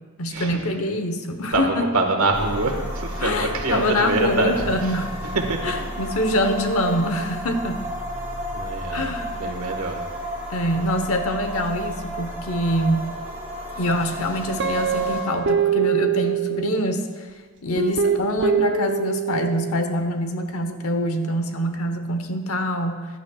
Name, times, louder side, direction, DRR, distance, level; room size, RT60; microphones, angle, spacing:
voice 1, 0.2-1.9 3.2-5.1 5.6-7.8 8.9-9.4 10.5-13.1 13.8-17.3 17.6-23.1, left 1 dB, 75° left, 7 dB, 1.0 m, -25 dB
voice 2, 1.5-4.5 4.8-5.0 5.2-5.8 8.5-9.1 9.3-10.1, right 2 dB, 80° right, 3 dB, 1.5 m, -25 dB
sound 1, 2.3-15.2, equal, 10° right, 3.6 m, -32 dB
Guitar, 14.6-17.1 17.8-19.7, right 7 dB, 55° right, 0.5 m, -23 dB
16.0 x 11.5 x 2.4 m, 1.5 s
head